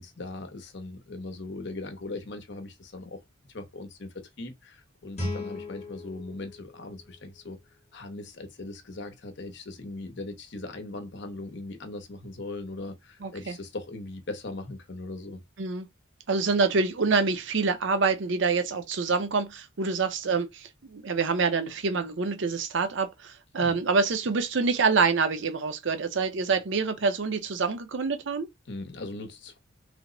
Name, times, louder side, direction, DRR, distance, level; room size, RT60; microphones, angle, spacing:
voice 1, 0.0-3.2 3.5-7.6 7.9-15.4 23.6-23.8 28.7-29.6, left 2 dB, 60° left, 0.8 m, -39 dB
Guitar, 5.1-7.9, left 2 dB, 35° left, 1.0 m, -38 dB
voice 2, 13.2-13.6 15.6-15.9 16.3-28.5, right 4 dB, 60° right, 0.6 m, -26 dB
3.3 x 2.1 x 3.7 m
head